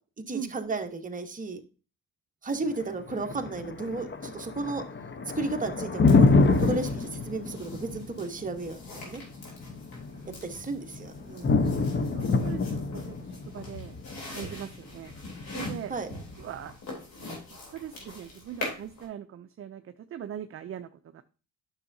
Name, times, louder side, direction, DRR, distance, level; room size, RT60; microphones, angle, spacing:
voice 1, 0.3-1.6 2.4-4.8 5.3-6.3 6.6-9.2 10.4-11.5 15.9-16.1, right 3 dB, 25° right, 4 dB, 1.2 m, -33 dB
Thunder, 2.6-16.6, left 3 dB, 35° left, 0.9 m, -27 dB
sound 1, 6.1-19.1, left 2 dB, 75° left, 3.4 m, -43 dB
voice 2, 12.0-13.9 14.3-15.1 15.5-15.9 16.4-16.7 17.5-21.2, right 9 dB, 40° right, 9 dB, 0.5 m, -41 dB
9.7 x 6.4 x 2.7 m, 0.35 s
cardioid pair, 90°, 34 cm